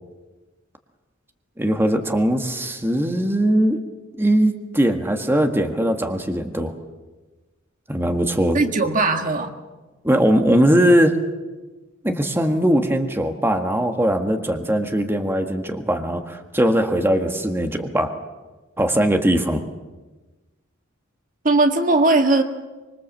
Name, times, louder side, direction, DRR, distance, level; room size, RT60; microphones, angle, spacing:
voice 1, 1.6-3.8 4.2-6.7 7.9-8.6 10.0-11.2 12.0-18.1 18.8-19.6, right 1 dB, 10° right, 5 dB, 1.7 m, -20 dB
voice 2, 8.5-9.6 21.4-22.4, right 2 dB, 40° right, 5 dB, 1.7 m, -18 dB
25.5 x 23.0 x 7.4 m, 1.2 s
head